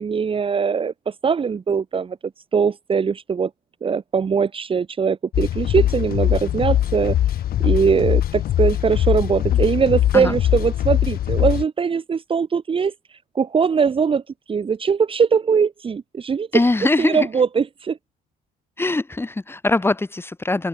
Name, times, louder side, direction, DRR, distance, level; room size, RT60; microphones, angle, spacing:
voice 1, 0.0-2.2 2.5-3.5 3.8-7.2 7.6-12.9 13.4-14.2 14.5-16.5 17.0-18.0, right 6 dB, 30° right, 1.9 m, -21 dB
sound 1, 5.3-11.6, left 12 dB, 60° left, 3.5 m, -21 dB
voice 2, 16.5-17.3 18.8-20.7, left 2 dB, 15° left, 3.5 m, -21 dB
cardioid pair, 110°, 17 cm